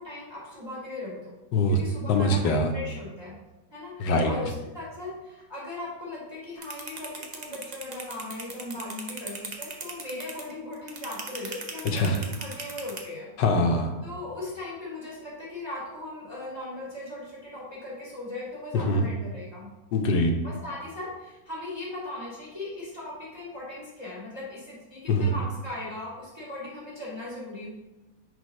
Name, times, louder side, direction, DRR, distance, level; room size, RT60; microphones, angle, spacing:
voice 1, 0.0-1.3 1.7-3.4 3.7-13.3 14.0-19.7 20.4-27.7, left 2 dB, 15° right, -7 dB, 1.8 m, -38 dB
voice 2, 2.1-2.7 4.0-4.3 11.9-12.2 13.4-13.9 18.8-19.1 19.9-20.3 25.1-25.3, left 1 dB, 85° left, 4 dB, 1.5 m, -23 dB
sound 1, 6.6-13.0, right 4 dB, 50° right, 0.5 m, -37 dB
6.4 x 3.7 x 5.3 m, 1.1 s
omnidirectional pair, 1.9 m